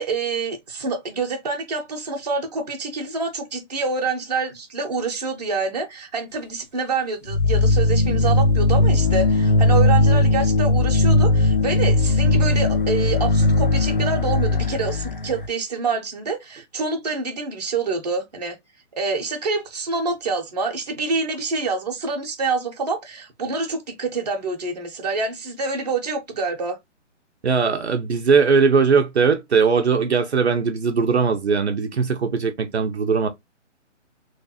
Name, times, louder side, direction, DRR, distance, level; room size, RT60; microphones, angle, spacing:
voice 1, 0.0-18.6 19.0-26.8, right 4 dB, 35° right, 0.9 m, -26 dB
sound 1, 7.3-15.5, left 2 dB, 45° left, 0.4 m, -18 dB
voice 2, 27.4-33.3, right 5 dB, 60° right, 0.8 m, -19 dB
3.2 x 3.2 x 2.7 m
hypercardioid pair, 180°, 37 cm